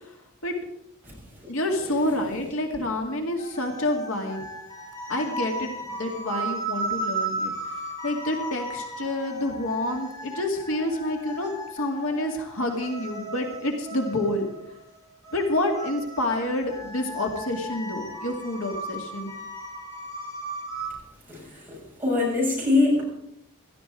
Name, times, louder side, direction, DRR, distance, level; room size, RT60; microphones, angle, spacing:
voice 1, 1.5-4.4 5.1-7.5 8.0-14.5 15.3-19.3, left 1 dB, 70° left, 3 dB, 2.3 m, -28 dB
sound 1, 3.4-20.9, right 2 dB, 15° left, 3.5 m, -36 dB
voice 2, 21.3-23.0, left 2 dB, 10° right, -5 dB, 6.9 m, -23 dB
17.0 x 13.5 x 4.9 m, 0.76 s
head